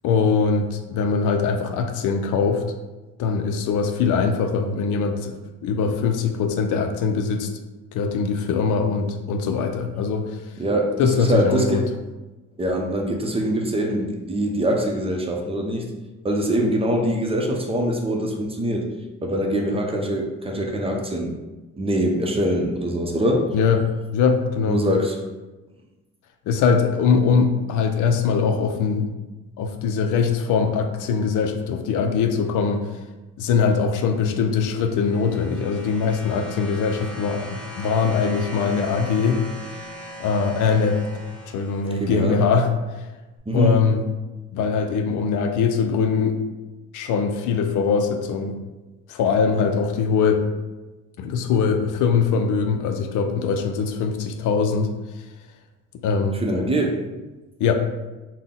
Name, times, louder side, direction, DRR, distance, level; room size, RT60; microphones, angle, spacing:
voice 1, 0.0-2.6 3.2-5.3 5.6-7.5 7.9-10.4 11.0-11.9 23.5-23.9 24.1-24.8 26.5-29.1 29.6-32.8 33.4-39.4 40.2-41.0 41.5-42.7 43.5-44.0 44.5-46.4 46.9-48.5 49.1-50.4 51.2-54.9 56.0-56.4 57.6-57.7, left 5 dB, 85° left, 6 dB, 0.5 m, -22 dB
voice 2, 10.6-11.8 12.6-15.9 16.2-18.9 19.2-21.3 21.8-23.5 24.7-25.1 42.0-42.4 43.5-43.7 56.4-57.0, right 1 dB, 20° right, 0 dB, 0.6 m, -23 dB
sound 1, 34.5-42.3 43.4-43.5, equal, 5° left, 1.2 m, -39 dB
4.0 x 2.2 x 3.7 m, 1.1 s
cardioid pair, 90°, 30 cm